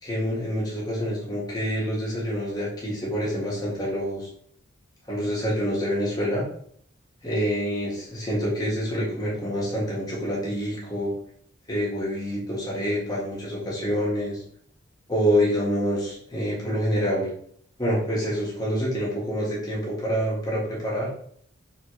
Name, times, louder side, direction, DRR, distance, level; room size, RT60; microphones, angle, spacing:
voice 1, 0.0-4.3 5.1-6.4 7.2-11.1 11.7-14.4 15.1-17.3 17.8-21.1, equal, 20° left, -6 dB, 1.5 m, -27 dB
4.2 x 3.7 x 3.1 m, 0.63 s
head